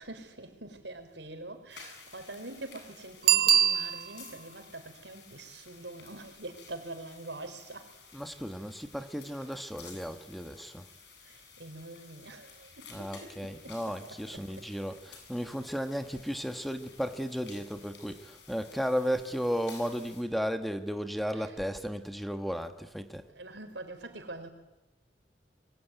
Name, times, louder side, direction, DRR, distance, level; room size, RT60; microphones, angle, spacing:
voice 1, 0.0-7.9 11.2-14.7 21.3-21.6 23.3-24.5, right 2 dB, 85° right, 4.6 m, -45 dB
sound 1, 1.7-20.2, left 5 dB, 70° left, 7.7 m, -53 dB
Bicycle bell, 3.2-4.4 9.9-10.0, right 10 dB, 60° right, 0.9 m, -24 dB
voice 2, 8.1-10.9 12.9-23.3, equal, ahead, 1.4 m, -34 dB
27.0 x 23.0 x 9.3 m
head